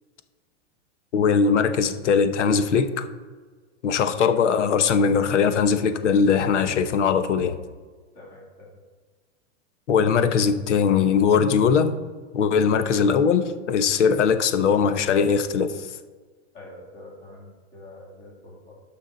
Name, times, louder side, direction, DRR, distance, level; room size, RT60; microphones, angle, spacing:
voice 1, 1.1-3.1 3.8-7.6 9.9-12.0 12.3-15.9, left 6 dB, 85° left, 10 dB, 1.0 m, -20 dB
voice 2, 4.0-4.3 8.1-8.8 16.5-18.8, left 1 dB, 20° left, -4 dB, 2.7 m, -45 dB
12.0 x 5.9 x 3.9 m, 1.4 s
supercardioid pair, 175°, 35 cm